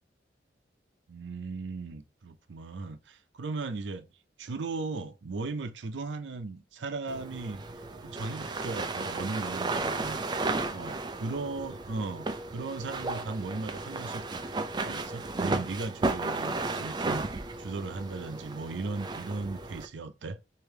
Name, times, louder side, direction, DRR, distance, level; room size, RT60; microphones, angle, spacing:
voice 1, 1.1-4.1 4.4-7.6 8.0-14.2 14.8-17.2 17.6-20.4, right 3 dB, 90° right, 0.5 m, -37 dB
sound 1, 7.1-19.9, right 3 dB, 25° right, 0.4 m, -34 dB
3.3 x 2.7 x 3.1 m
head